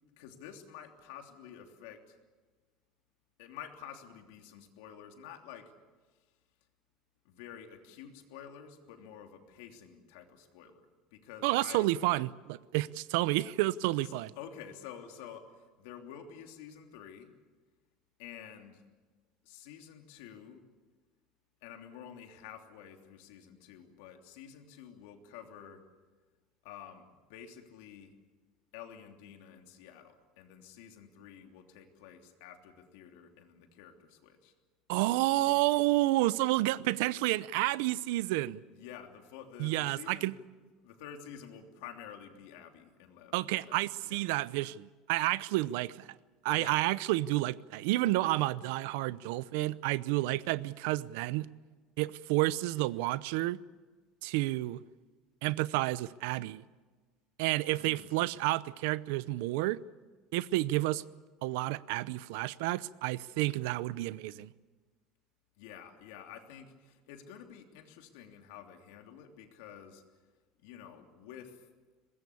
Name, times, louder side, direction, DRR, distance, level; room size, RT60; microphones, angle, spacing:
voice 1, 0.2-2.2 3.4-5.7 7.2-10.9 11.1-11.9 14.0-17.3 18.2-18.8 19.4-20.6 21.6-25.8 26.6-28.1 28.7-34.5 38.7-40.3 40.8-44.2 46.5-46.8 57.8-58.2 65.6-70.0 70.6-71.6, left 9 dB, 80° left, 3.1 m, -50 dB
voice 2, 11.4-14.3 34.9-38.6 39.6-40.3 43.3-46.1 46.4-51.5 52.0-53.6 54.2-54.8 55.4-56.6 57.4-59.8 60.3-61.0 61.4-64.5, right 18 dB, 80° right, 0.7 m, -30 dB
23.0 x 20.5 x 8.5 m
cardioid pair, 175°, 0 cm